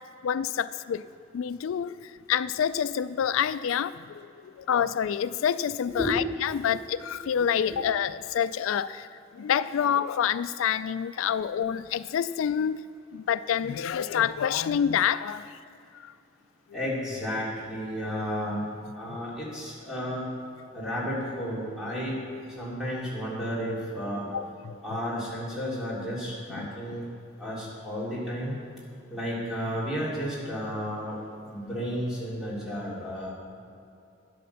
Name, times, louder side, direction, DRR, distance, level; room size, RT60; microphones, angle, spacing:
voice 1, 0.2-1.1 1.3-9.1 9.3-12.8 13.1-15.5 16.0-16.1 19.1-19.2 24.3-24.8 26.5-26.7, left 8 dB, 85° left, 14 dB, 0.3 m, -27 dB
voice 2, 5.9-6.2 6.7-6.8 16.7-18.6 19.0-20.2 20.7-22.1 22.6-24.2 24.8-27.0 27.4-28.6 29.1-31.2 31.4-33.3, equal, 5° right, -8 dB, 3.6 m, -32 dB
12.0 x 9.5 x 7.0 m, 2.7 s
head